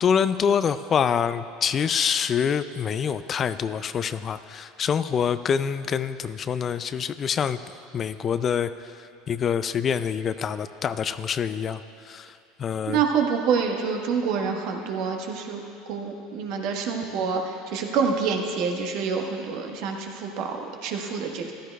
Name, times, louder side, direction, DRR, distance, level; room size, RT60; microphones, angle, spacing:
voice 1, 0.0-7.6 7.9-13.0, left 7 dB, 40° left, 13 dB, 0.3 m, -26 dB
voice 2, 12.9-15.6 15.9-21.5, right 5 dB, 65° right, 2 dB, 1.2 m, -27 dB
15.0 x 12.0 x 2.3 m, 2.5 s
hypercardioid pair, 90°, 0 cm